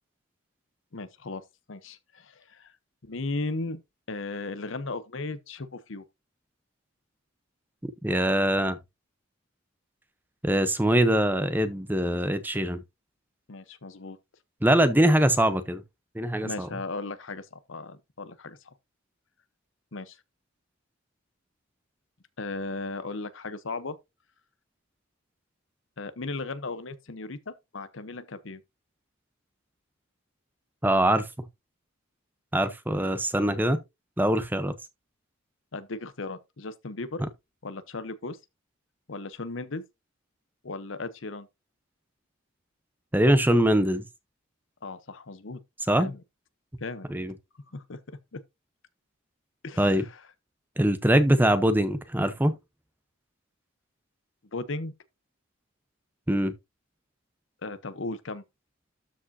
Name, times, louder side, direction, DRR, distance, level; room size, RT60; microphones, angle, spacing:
voice 1, 0.9-1.4 1.7-2.7 3.0-3.8 4.1-6.0 13.5-14.2 16.4-18.7 19.9-20.2 22.4-24.0 26.0-28.6 35.7-37.2 37.6-38.4 39.1-39.8 40.6-41.5 44.8-45.6 46.0-46.2 46.8-47.1 47.7-48.0 48.3-48.4 49.6-50.1 54.5-54.9 57.6-58.4, left 3 dB, 65° left, 0.9 m, -36 dB
voice 2, 8.0-8.8 10.4-12.8 14.6-15.8 16.1-16.7 30.8-31.3 32.5-33.8 34.2-34.7 43.1-44.0 45.9-46.1 47.1-47.3 49.8-50.1 50.8-52.6 56.3-56.5, right 1 dB, 10° right, 0.8 m, -23 dB
13.0 x 5.0 x 2.7 m
head